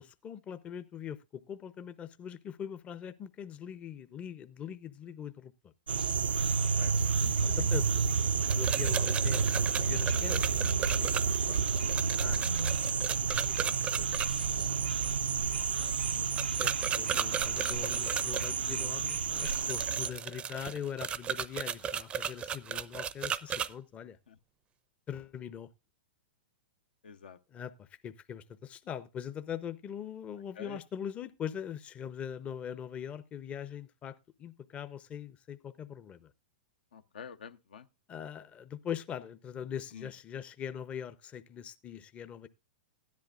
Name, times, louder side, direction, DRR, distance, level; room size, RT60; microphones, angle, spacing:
voice 1, 0.0-5.7 7.5-10.4 10.8-12.5 13.1-14.2 14.5-15.0 16.6-24.2 25.1-25.7 27.5-36.3 38.1-42.5, left 8 dB, 25° left, 0.6 m, -42 dB
sound 1, 5.9-20.1, right 5 dB, 85° right, 0.5 m, -30 dB
voice 2, 6.6-7.7 10.6-10.9 15.6-16.3 22.2-22.3 24.3-24.4 27.0-27.4 30.6-30.8 36.9-37.9 39.9-40.1, left 6 dB, 75° left, 0.7 m, -49 dB
sound 2, 8.4-14.3 16.4-18.5 19.3-23.7, right 8 dB, 20° right, 0.5 m, -35 dB
15.5 x 10.5 x 2.4 m
hypercardioid pair, 110°, 5 cm